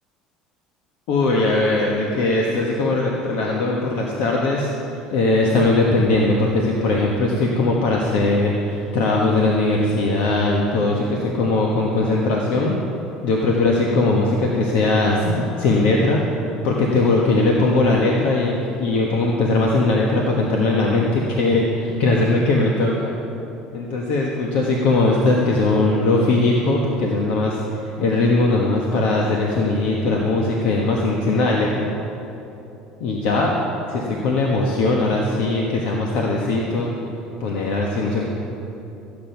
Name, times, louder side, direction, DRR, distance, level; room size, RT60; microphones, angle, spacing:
voice 1, 1.1-4.7 5.1-12.8 13.2-16.2 16.6-23.1 23.7-31.9 33.0-33.6 33.9-36.9 37.4-38.2, left 2 dB, 75° left, -1 dB, 1.4 m, -20 dB
14.5 x 8.6 x 5.8 m, 2.9 s
supercardioid pair, 110°, 2 cm